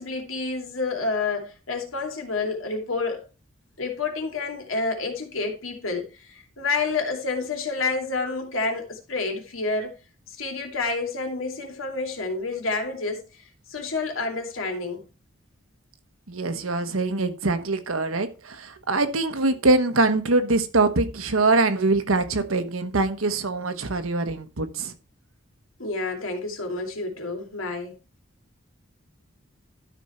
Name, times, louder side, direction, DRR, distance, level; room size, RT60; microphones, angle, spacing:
voice 1, 0.0-3.2 3.8-9.9 10.4-13.2 13.7-15.0 25.8-27.9, left 3 dB, 80° left, 2.7 m, -29 dB
voice 2, 16.3-24.9, right 3 dB, 85° right, 1.2 m, -23 dB
12.0 x 5.3 x 4.4 m
head